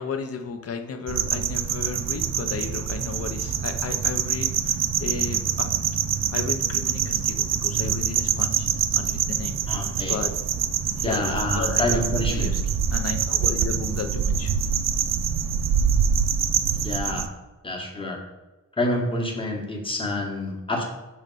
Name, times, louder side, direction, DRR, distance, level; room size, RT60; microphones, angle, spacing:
voice 1, 0.0-6.0 6.3-10.3 10.8-12.0 12.3-12.6 12.9-14.6, left 5 dB, 50° left, 7 dB, 0.6 m, -34 dB
sound 1, 1.1-17.3, right 7 dB, 55° right, 0.4 m, -25 dB
voice 2, 9.7-10.2 11.0-12.5 16.8-17.3 17.6-18.2 18.8-20.8, left 1 dB, 15° left, 0 dB, 1.0 m, -27 dB
6.5 x 3.1 x 5.2 m, 1.1 s
wide cardioid pair, 175°, 32 cm